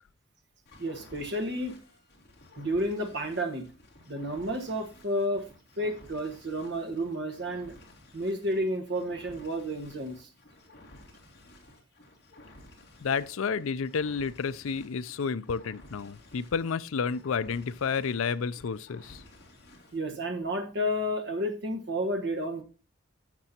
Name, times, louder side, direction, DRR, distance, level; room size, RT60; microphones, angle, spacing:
sound 1, 0.7-20.0, left 1 dB, 50° left, 2.7 m, -54 dB
voice 1, 0.8-1.7 2.6-3.7 4.1-5.4 5.8-7.7 8.1-10.3 19.9-22.6, equal, 55° right, 1.5 m, -31 dB
voice 2, 13.0-19.2, left 5 dB, 80° left, 0.5 m, -31 dB
12.0 x 7.8 x 2.8 m
head